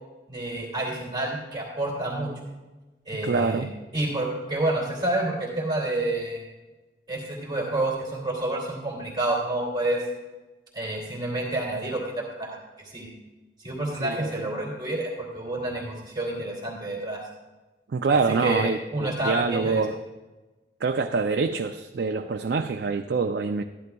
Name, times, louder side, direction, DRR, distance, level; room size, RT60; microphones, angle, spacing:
voice 1, 0.3-2.3 3.1-3.7 3.9-6.4 7.1-10.0 10.7-12.6 12.9-13.1 13.6-17.2 18.3-19.8, right 1 dB, 25° right, -4 dB, 2.4 m, -29 dB
voice 2, 3.2-3.7 14.0-14.5 17.9-20.0 20.8-23.6, right 4 dB, 70° right, 5 dB, 0.4 m, -25 dB
13.0 x 11.0 x 2.3 m, 1.2 s
head